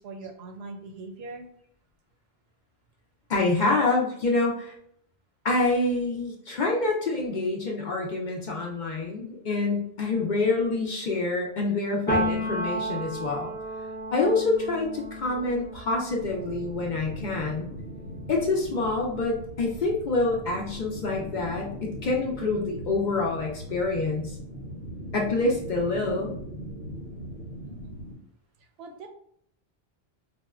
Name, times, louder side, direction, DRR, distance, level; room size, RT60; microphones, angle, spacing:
voice 1, 0.0-1.5 27.6-28.0 28.8-29.1, right 3 dB, 75° right, 5 dB, 0.8 m, -41 dB
voice 2, 3.3-4.7 5.4-13.5 14.1-17.7 18.3-24.4 25.1-26.3, left 3 dB, 55° left, -1 dB, 0.6 m, -26 dB
Piano, 12.1-19.7 20.0-21.6, equal, 15° left, 0.6 m, -34 dB
sound 1, 16.2-28.1, equal, 85° left, 1.1 m, -40 dB
4.2 x 2.1 x 2.3 m, 0.67 s
omnidirectional pair, 1.1 m